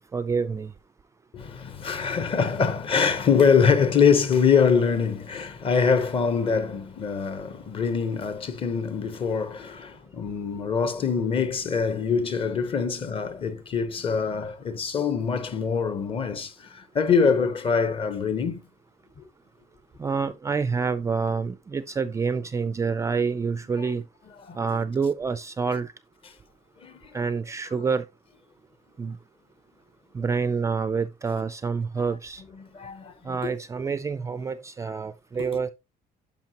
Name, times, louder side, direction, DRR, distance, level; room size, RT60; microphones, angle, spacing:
voice 1, 0.1-0.7 20.0-24.0 24.5-25.9 27.1-28.1 29.0-29.2 30.1-32.4 33.2-35.7, right 5 dB, 20° right, 0.4 m, -27 dB
voice 2, 1.3-18.6 19.2-19.3 24.5-24.6 26.8-27.2 32.6-33.4, left 6 dB, 35° left, 0.9 m, -24 dB
10.5 x 5.7 x 2.9 m
cardioid pair, 165°, 16 cm